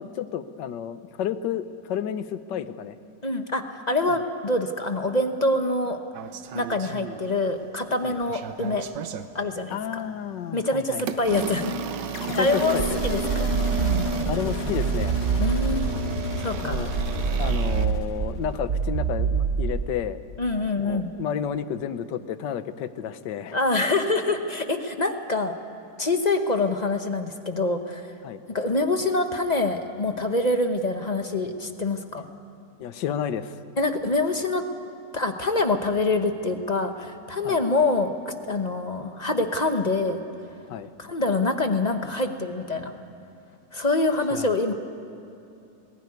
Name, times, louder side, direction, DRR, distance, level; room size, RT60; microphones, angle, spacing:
voice 1, 0.0-3.0 8.0-8.2 9.7-11.0 12.3-13.0 14.3-15.2 16.6-16.9 17.4-20.2 20.8-23.6 28.2-28.4 32.8-33.6 37.4-37.6 40.7-40.9 44.3-44.5, left 9 dB, 85° left, 12 dB, 1.5 m, -31 dB
voice 2, 3.2-6.0 6.5-8.9 9.3-10.0 10.5-11.8 12.0-12.8 13.0-13.5 13.8-14.0 15.4-15.9 16.4-16.8 20.4-21.1 23.5-25.5 26.0-28.1 28.5-32.3 33.8-34.6 35.1-40.2 41.0-42.9 43.7-44.7, left 2 dB, 30° left, 6 dB, 0.9 m, -25 dB
sound 1, 6.1-7.6 8.0-9.3 10.0-10.2 11.0-17.9, right 5 dB, 90° right, 1.5 m, -33 dB
sound 2, 12.1-18.6, left 4 dB, 70° left, 1.7 m, -34 dB
sound 3, 12.8-16.0 16.7-20.0, right 6 dB, 60° right, 0.6 m, -26 dB
20.0 x 17.5 x 9.5 m, 2.7 s
omnidirectional pair, 1.9 m